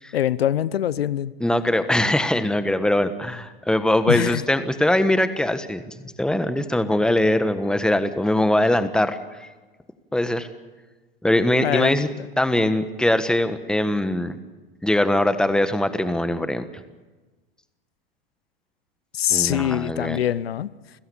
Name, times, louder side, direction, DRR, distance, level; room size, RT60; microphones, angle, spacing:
voice 1, 0.1-1.3 4.1-4.4 11.6-12.3 19.1-20.7, left 11 dB, 85° left, 19 dB, 0.7 m, -23 dB
voice 2, 1.4-9.5 10.1-10.5 11.2-12.1 12.4-14.4 14.8-16.7 19.3-20.2, left 1 dB, 5° left, 10 dB, 1.4 m, -22 dB
29.0 x 16.0 x 7.1 m, 1.2 s
hypercardioid pair, 105°, 30 cm